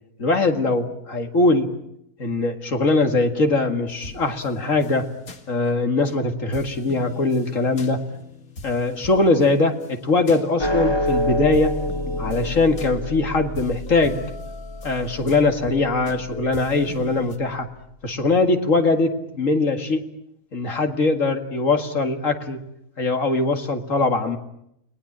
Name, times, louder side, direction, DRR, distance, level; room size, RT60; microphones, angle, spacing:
voice 1, 0.2-1.7 2.2-5.1 5.5-8.0 8.6-11.7 12.2-14.2 14.8-17.7 18.0-20.0 20.5-22.6 23.0-24.4, left 3 dB, 65° left, 5 dB, 2.4 m, -21 dB
sound 1, 3.9-6.2 6.5-11.2 11.5-17.4, left 3 dB, 85° left, 2.5 m, -40 dB
sound 2, 10.6-17.1, left 1 dB, 20° left, 1.3 m, -28 dB
29.5 x 20.5 x 8.7 m, 0.78 s
omnidirectional pair, 1.5 m